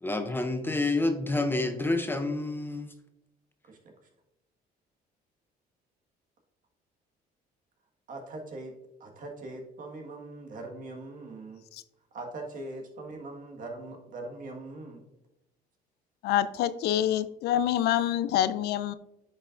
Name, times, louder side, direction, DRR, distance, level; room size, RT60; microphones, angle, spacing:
voice 1, 0.0-2.9, left 2 dB, 10° left, 7 dB, 0.6 m, -28 dB
voice 2, 8.1-8.7 9.0-11.6 12.1-15.0, right 2 dB, 55° right, 2 dB, 1.6 m, -41 dB
voice 3, 16.2-18.9, left 11 dB, 75° left, 14 dB, 0.4 m, -26 dB
9.7 x 5.4 x 2.5 m, 0.89 s
cardioid pair, 110°, 17 cm